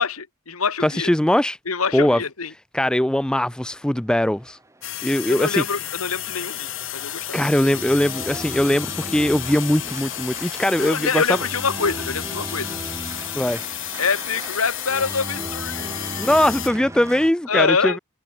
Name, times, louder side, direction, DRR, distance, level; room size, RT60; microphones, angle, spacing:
voice 1, 0.0-1.1 1.6-2.5 5.3-7.4 10.6-12.8 14.0-16.3 17.5-18.0, left 5 dB, 85° left, 1.6 m, -25 dB
voice 2, 0.8-1.6 1.9-2.2 2.7-4.6 5.0-5.6 7.3-11.2 13.3-13.6 16.2-18.0, left 1 dB, 5° left, 0.3 m, -20 dB
Organ, 4.2-17.3, right 1 dB, 15° right, 2.5 m, -37 dB
sound 1, 4.8-16.7, left 12 dB, 60° left, 2.3 m, -32 dB
head